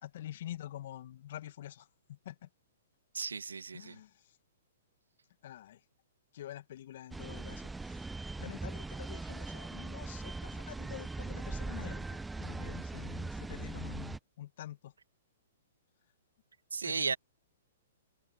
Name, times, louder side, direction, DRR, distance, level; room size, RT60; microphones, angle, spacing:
voice 1, 0.0-2.5 3.7-4.4 5.4-5.8 6.3-8.1 8.4-14.9 16.8-17.2, left 12 dB, 55° left, 2.3 m, -47 dB
voice 2, 3.1-4.0 16.7-17.2, right 5 dB, 80° right, 2.3 m, -35 dB
sound 1, 7.1-14.2, right 3 dB, 5° right, 0.4 m, -40 dB
figure-of-eight pair, 115°, 0 cm